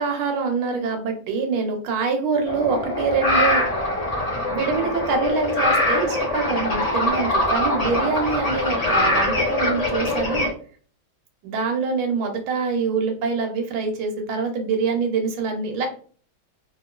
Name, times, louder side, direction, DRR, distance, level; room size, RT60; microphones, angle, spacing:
voice 1, 0.0-3.6 4.5-10.5 11.4-15.9, right 5 dB, 80° right, 3 dB, 1.6 m, -25 dB
sound 1, 2.5-10.5, left 1 dB, 80° left, 0.3 m, -23 dB
3.4 x 2.9 x 2.4 m, 0.44 s
omnidirectional pair, 2.3 m